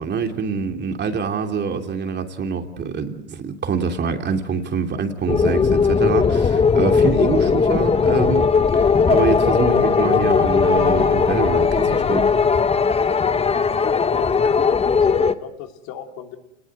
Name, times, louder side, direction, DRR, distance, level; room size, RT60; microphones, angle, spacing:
voice 1, 0.0-8.5 9.1-12.3, right 5 dB, 30° right, 5 dB, 3.0 m, -25 dB
sound 1, 5.3-15.4, left 5 dB, 15° left, 1.1 m, -18 dB
voice 2, 13.9-16.4, left 9 dB, 55° left, 5 dB, 3.1 m, -36 dB
30.0 x 20.0 x 7.9 m, 0.92 s
hypercardioid pair, 95°, 34 cm